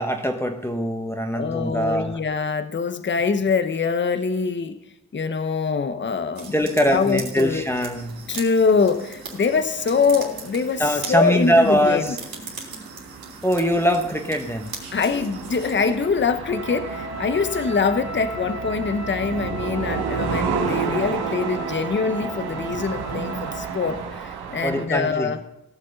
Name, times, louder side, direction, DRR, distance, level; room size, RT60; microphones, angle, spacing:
voice 1, 0.0-2.2 6.5-8.2 10.8-12.2 13.4-14.7 24.6-25.3, equal, 5° left, 3 dB, 1.2 m, -22 dB
voice 2, 1.3-4.8 5.1-6.6 6.9-7.6 8.3-12.1 14.9-25.4, left 5 dB, 30° left, 10 dB, 0.9 m, -24 dB
sound 1, 6.3-16.0, right 4 dB, 65° right, 3.3 m, -39 dB
sound 2, 7.4-24.8, right 6 dB, 80° right, 1.4 m, -32 dB
Wind instrument woodwind instrument, 16.5-24.1, right 1 dB, 45° right, 2.3 m, -36 dB
17.5 x 6.5 x 5.3 m, 0.90 s
cardioid pair, 65°, 38 cm